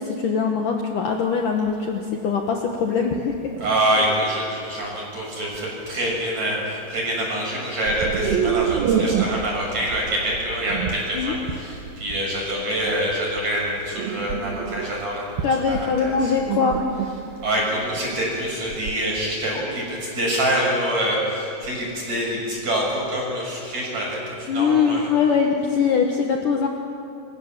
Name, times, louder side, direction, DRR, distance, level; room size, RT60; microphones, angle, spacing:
voice 1, 0.0-3.4 11.1-11.4 15.4-16.8 24.5-26.7, left 6 dB, 70° left, 2 dB, 2.0 m, -22 dB
sound 1, 1.1-1.2 1.7-1.9 2.5-2.6 3.5-4.2 5.5-5.6 6.0-6.4 7.8-19.1, right 7 dB, 70° right, 2.3 m, -28 dB
voice 2, 3.6-15.4 15.7-16.3 17.4-25.1, right 1 dB, 35° right, -2 dB, 7.6 m, -25 dB
28.0 x 23.0 x 7.5 m, 2.6 s
omnidirectional pair, 5.8 m